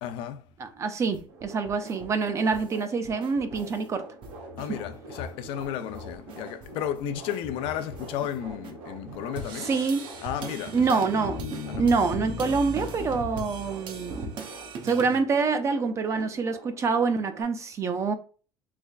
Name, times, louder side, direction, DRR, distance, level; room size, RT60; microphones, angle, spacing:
voice 1, 0.0-0.5 4.6-9.8 10.2-11.0 11.7-11.9, left 10 dB, 75° left, 0.4 m, -33 dB
voice 2, 0.6-4.0 4.7-4.8 9.7-10.0 10.7-14.3 14.8-18.1, right 4 dB, 30° right, 0.4 m, -26 dB
sound 1, 0.9-3.9 4.2-4.7 5.1-5.2 5.4-8.7 9.3-15.2, right 3 dB, 60° right, 0.7 m, -41 dB
sound 2, 1.3-17.4, right 2 dB, 80° right, 1.0 m, -46 dB
sound 3, 10.2-14.7, left 3 dB, 45° left, 0.8 m, -39 dB
3.3 x 3.1 x 2.3 m
cardioid pair, 125°, 9 cm